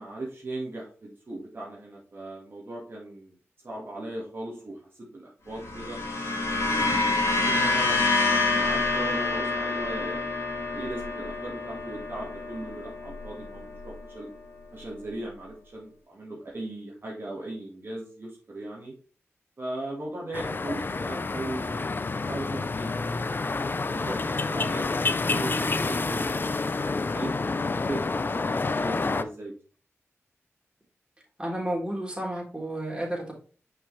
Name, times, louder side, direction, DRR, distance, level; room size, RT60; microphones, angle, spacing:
voice 1, 0.0-3.3 3.6-6.0 6.6-10.3 10.7-14.3 14.7-18.9 19.6-21.9 22.2-23.0 23.4-24.9 25.3-27.3 27.7-29.5, right 2 dB, 45° right, -3 dB, 2.0 m, -38 dB
sound 1, 5.5-14.0, left 3 dB, 65° left, 2.6 m, -27 dB
sound 2, 20.3-29.2, left 3 dB, 40° left, 0.5 m, -28 dB
voice 2, 31.4-33.3, right 1 dB, 15° right, -2 dB, 3.4 m, -31 dB
6.0 x 5.3 x 3.3 m, 0.39 s
cardioid pair, 55°, 5 cm